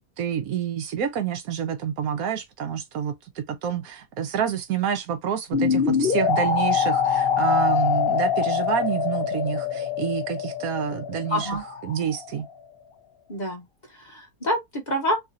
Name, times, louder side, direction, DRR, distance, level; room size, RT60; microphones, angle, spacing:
voice 1, 0.0-11.5 11.8-12.5, right 8 dB, 80° right, 1.1 m, -28 dB
sound 1, 5.5-12.4, left 7 dB, 55° left, 0.7 m, -24 dB
voice 2, 11.3-11.6 13.3-15.2, equal, 35° left, 1.2 m, -27 dB
3.2 x 2.5 x 2.6 m
omnidirectional pair, 1.5 m